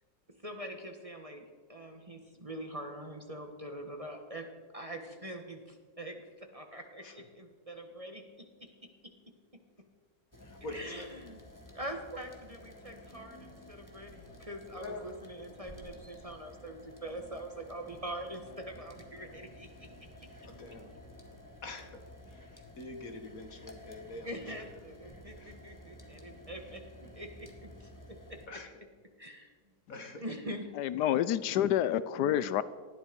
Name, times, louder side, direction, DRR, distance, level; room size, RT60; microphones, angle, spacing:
voice 1, 0.4-1.4 1.7-4.5 4.7-8.2 8.6-8.7 10.7-11.4 11.7-19.9 20.2-20.3 24.2-26.8 27.1-27.9 28.3-28.4 29.2-29.5 30.2-30.7, right 1 dB, 20° right, 1.6 m, -43 dB
sound 1, 10.3-28.5, left 1 dB, 10° left, 1.8 m, -52 dB
voice 2, 10.4-11.1 14.8-15.2 20.4-20.9 21.6-22.0 22.3-24.5 25.4-25.6 28.5-28.7 29.9-30.3, left 2 dB, 55° left, 2.1 m, -45 dB
voice 3, 30.8-32.6, left 11 dB, 85° left, 1.2 m, -28 dB
19.5 x 14.0 x 5.3 m
omnidirectional pair, 1.7 m